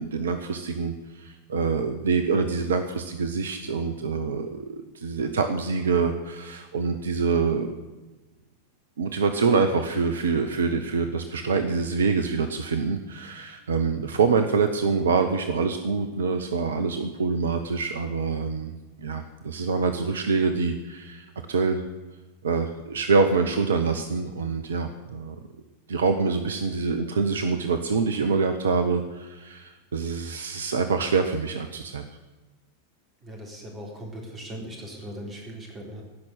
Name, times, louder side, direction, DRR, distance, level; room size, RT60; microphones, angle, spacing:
voice 1, 0.0-7.7 9.0-18.7 19.0-21.8 22.4-25.3 25.9-32.0, right 4 dB, 65° right, 8 dB, 0.8 m, -25 dB
voice 2, 33.2-36.0, equal, 20° right, 0 dB, 3.8 m, -39 dB
16.0 x 6.1 x 9.6 m, 1.2 s
figure-of-eight pair, 90°, 0 cm